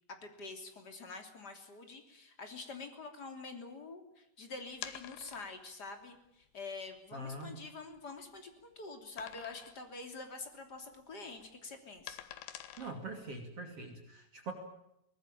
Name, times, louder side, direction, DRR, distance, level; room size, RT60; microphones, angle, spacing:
voice 1, 0.2-12.2, left 3 dB, 25° left, 5 dB, 3.1 m, -46 dB
sound 1, 4.7-5.7 6.4-6.5 7.0-7.1 7.5-8.5 9.2-9.9 10.2-10.5 10.8-13.3, left 12 dB, 80° left, 3.4 m, -48 dB
voice 2, 7.1-7.6 12.8-14.5, right 2 dB, 40° right, 4 dB, 3.2 m, -43 dB
23.5 x 19.0 x 8.9 m, 0.82 s
omnidirectional pair, 4.7 m